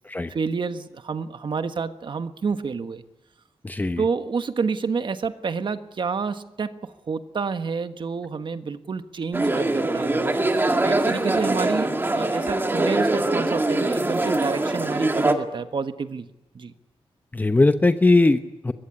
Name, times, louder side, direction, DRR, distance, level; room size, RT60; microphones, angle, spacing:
voice 1, 0.3-3.0 4.0-16.7, right 5 dB, 50° right, 10 dB, 1.4 m, -29 dB
voice 2, 3.6-4.0 17.3-18.7, left 2 dB, 15° left, 9 dB, 0.9 m, -19 dB
sound 1, 9.3-15.3, right 2 dB, 20° right, 2.1 m, -23 dB
23.0 x 22.0 x 9.8 m, 0.95 s
wide cardioid pair, 160°, 10 cm